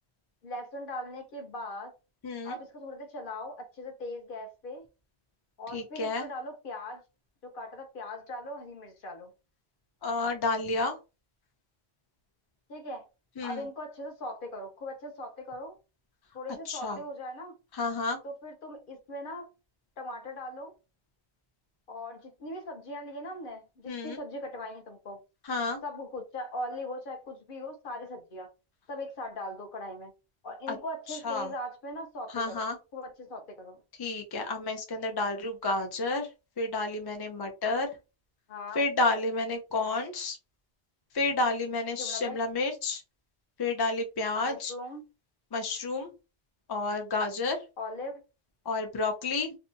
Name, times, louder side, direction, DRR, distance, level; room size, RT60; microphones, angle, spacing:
voice 1, 0.4-1.9 2.4-4.9 5.6-7.0 7.4-9.3 12.7-13.1 13.4-15.8 16.3-17.5 18.2-19.5 20.0-20.7 21.9-25.2 25.8-28.5 28.9-30.1 30.4-32.6 32.9-33.8 38.5-38.8 41.9-42.4 44.5-45.0 47.8-48.2, left 1 dB, 55° left, 0.8 m, -40 dB
voice 2, 2.2-2.6 5.7-6.3 10.0-11.0 13.4-13.7 16.7-17.0 17.7-18.2 23.9-24.2 25.4-25.8 30.7-30.8 31.1-31.5 32.3-32.8 34.0-36.3 36.6-37.9 38.7-40.4 41.1-43.0 43.6-44.7 45.5-46.1 46.7-47.6 48.7-49.6, left 3 dB, 40° left, 0.3 m, -30 dB
2.7 x 2.2 x 2.6 m
omnidirectional pair, 1.1 m